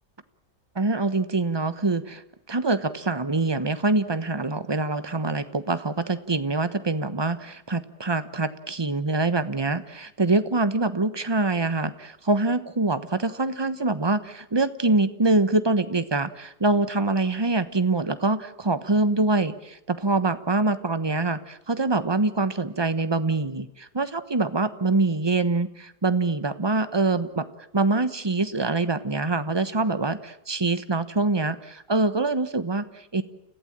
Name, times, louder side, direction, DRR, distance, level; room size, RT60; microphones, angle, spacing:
voice 1, 0.7-2.2 2.5-27.4 27.7-33.2, right 3 dB, 20° right, 12 dB, 1.0 m, -24 dB
30.0 x 16.0 x 8.9 m, 0.82 s
omnidirectional pair, 1.7 m